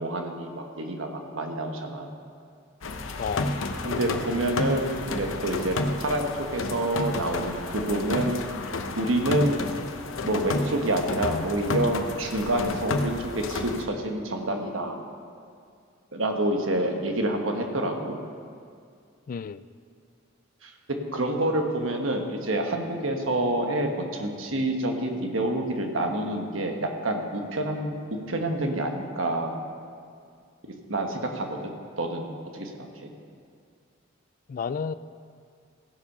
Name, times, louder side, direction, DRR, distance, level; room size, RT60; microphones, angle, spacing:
voice 1, 0.0-2.1 3.8-8.4 9.0-9.6 10.2-15.0 16.1-18.2 20.6-20.7 21.1-29.6 30.6-31.7 32.0-33.1, right 1 dB, 85° right, 3 dB, 1.3 m, -28 dB
sound 1, 2.8-13.8, left 2 dB, 85° left, 0.8 m, -31 dB
voice 2, 3.2-3.5 19.3-19.6 34.5-34.9, left 6 dB, 45° left, 15 dB, 0.3 m, -31 dB
15.0 x 7.2 x 5.5 m, 2.3 s
head